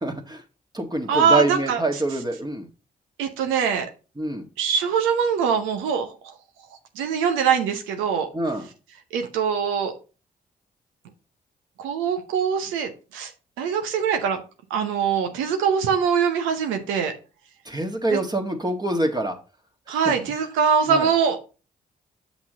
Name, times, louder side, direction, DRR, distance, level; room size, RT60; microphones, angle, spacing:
voice 1, 0.0-0.4 0.7-2.7 4.2-4.5 8.3-8.7 17.6-19.4 19.9-20.1 20.9-21.1, right 2 dB, 20° right, 4 dB, 1.5 m, -26 dB
voice 2, 1.1-1.8 3.2-3.9 4.6-6.3 7.0-8.3 9.1-9.9 11.8-13.3 13.6-14.4 14.7-17.1 19.9-21.4, right 6 dB, 85° right, 6 dB, 0.8 m, -23 dB
6.0 x 6.0 x 3.8 m, 0.33 s
hypercardioid pair, 40°, 20 cm